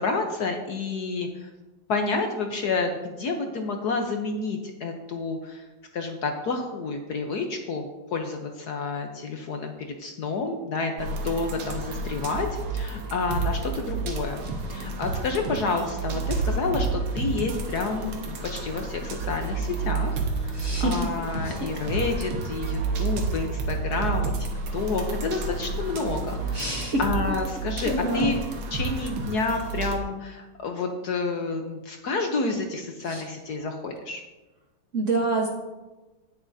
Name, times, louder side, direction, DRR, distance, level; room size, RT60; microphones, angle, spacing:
voice 1, 0.0-1.5 1.9-5.7 5.9-9.7 10.0-14.4 14.7-24.5 24.7-28.4 28.7-34.2, left 3 dB, 60° left, 4 dB, 1.1 m, -29 dB
sound 1, 11.0-30.0, right 3 dB, 80° right, 2.0 m, -30 dB
voice 2, 20.5-20.9 21.4-21.6 26.5-27.0 27.3-27.4 27.8-28.3 33.0-33.2 34.9-35.5, right 2 dB, 45° right, 0 dB, 1.1 m, -27 dB
17.5 x 7.3 x 2.7 m, 1.1 s
omnidirectional pair, 2.3 m